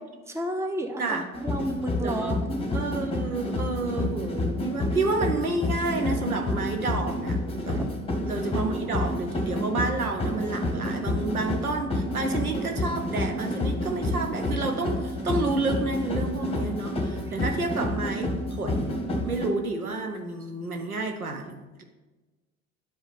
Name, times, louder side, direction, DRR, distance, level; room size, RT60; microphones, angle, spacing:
voice 1, 0.3-2.7 7.7-7.9, equal, 5° right, 5 dB, 0.9 m, -31 dB
sound 1, 1.3-19.5, left 1 dB, 15° left, 1.3 m, -29 dB
voice 2, 2.0-2.4 2.7-7.4 7.7-7.8 8.2-18.9 19.2-21.8, right 3 dB, 90° right, 4 dB, 0.8 m, -30 dB
9.7 x 4.9 x 4.1 m, 1.2 s
figure-of-eight pair, 65°, 42 cm